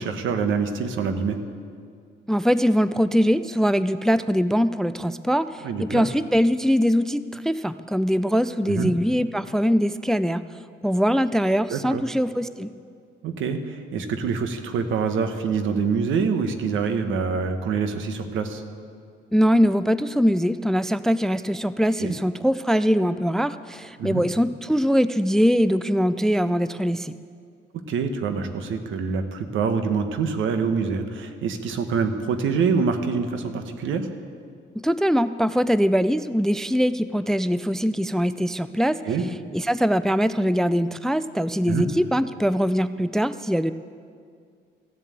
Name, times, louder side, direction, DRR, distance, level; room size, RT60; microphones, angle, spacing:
voice 1, 0.0-1.4 5.6-6.1 8.7-8.9 11.7-12.0 13.2-18.6 22.0-22.1 24.0-24.2 27.9-34.1 39.0-39.2 41.7-41.8, right 5 dB, 80° right, 8 dB, 1.2 m, -25 dB
voice 2, 2.3-10.4 10.8-12.7 19.3-27.1 34.8-39.0 39.5-43.7, equal, ahead, 14 dB, 0.3 m, -22 dB
14.5 x 7.5 x 8.4 m, 2.2 s
cardioid pair, 90°, 20 cm